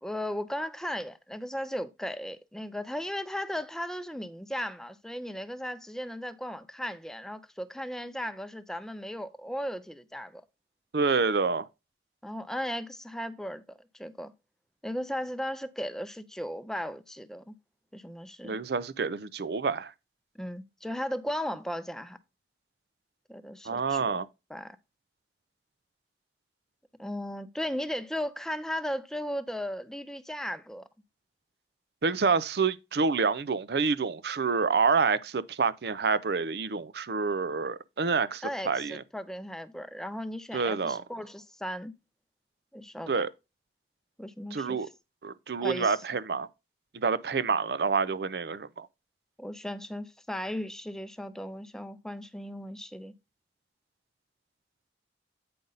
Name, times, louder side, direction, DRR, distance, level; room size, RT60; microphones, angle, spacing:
voice 1, 0.0-10.4 12.2-14.3 14.8-17.5 17.9-18.6 20.4-22.2 23.3-24.2 24.5-24.8 27.0-30.9 38.4-41.9 42.7-43.2 44.2-44.8 45.6-46.0 49.4-53.1, equal, 5° left, 0.5 m, -36 dB
voice 2, 10.9-11.7 18.4-19.9 23.6-24.3 32.0-39.0 40.5-41.0 43.1-43.3 44.5-44.9 45.2-46.5 46.9-48.9, right 5 dB, 65° right, 0.5 m, -28 dB
8.6 x 5.3 x 3.9 m
head